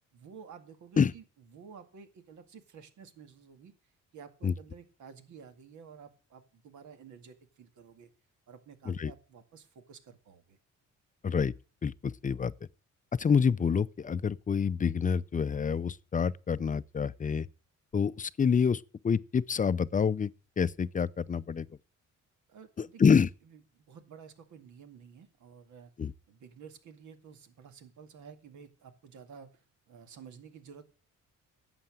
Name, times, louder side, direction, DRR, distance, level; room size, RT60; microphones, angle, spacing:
voice 1, 0.1-3.7 4.1-8.1 8.5-10.6 22.5-29.6 29.9-30.8, right 6 dB, 75° right, 2.2 m, -52 dB
voice 2, 11.8-12.5 13.2-17.5 17.9-20.3 20.6-21.7 22.8-23.3 26.0-26.1, left 6 dB, 25° left, 0.5 m, -27 dB
11.5 x 8.0 x 7.7 m
cardioid pair, 90°, 30 cm